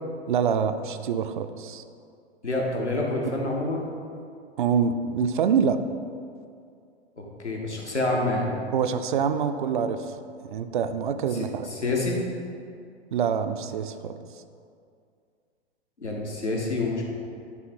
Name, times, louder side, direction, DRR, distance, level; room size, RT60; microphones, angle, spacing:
voice 1, 0.3-1.8 4.6-5.8 8.7-10.1 10.4-11.7 13.1-14.2, right 7 dB, 50° right, 9 dB, 0.4 m, -25 dB
voice 2, 2.4-3.9 7.2-8.5 11.7-12.2 16.0-17.1, left 2 dB, 90° left, -1 dB, 1.2 m, -27 dB
9.6 x 3.7 x 4.3 m, 2.3 s
figure-of-eight pair, 110°, 33 cm